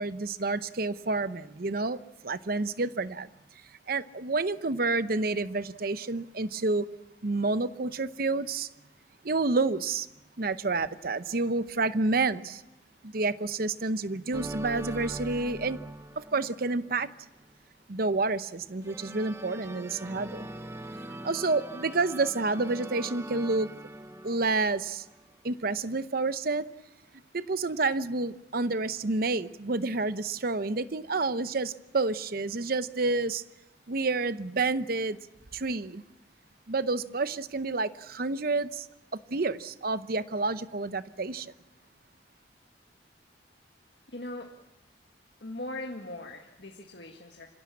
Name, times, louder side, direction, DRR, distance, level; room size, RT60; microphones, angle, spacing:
voice 1, 0.0-2.0 2.2-3.3 3.9-6.9 7.2-8.7 9.2-10.1 10.4-12.6 13.0-15.8 16.2-17.1 17.9-20.5 21.1-23.8 24.2-25.0 25.4-26.7 27.3-33.4 33.9-35.2 35.5-36.0 36.7-38.9 39.1-41.5, right 3 dB, 55° right, 0.8 m, -29 dB
sound 1, 14.3-17.0 18.8-25.1, right 1 dB, 15° right, 0.9 m, -41 dB
voice 2, 44.1-44.5 45.4-47.5, left 1 dB, 65° left, 1.9 m, -40 dB
26.0 x 16.5 x 8.4 m
head